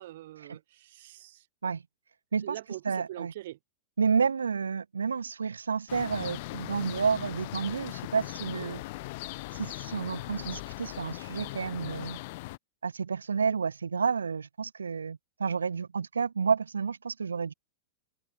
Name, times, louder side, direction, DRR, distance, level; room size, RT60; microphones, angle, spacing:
voice 1, 0.0-1.4 2.4-3.6, right 15 dB, 60° right, 7.7 m, -43 dB
voice 2, 2.8-3.3 4.0-8.8 9.5-12.2 12.8-17.5, right 5 dB, 80° right, 1.0 m, -30 dB
sound 1, 5.9-12.6, left 21 dB, 55° left, 3.4 m, -39 dB
figure-of-eight pair, 95°, 0 cm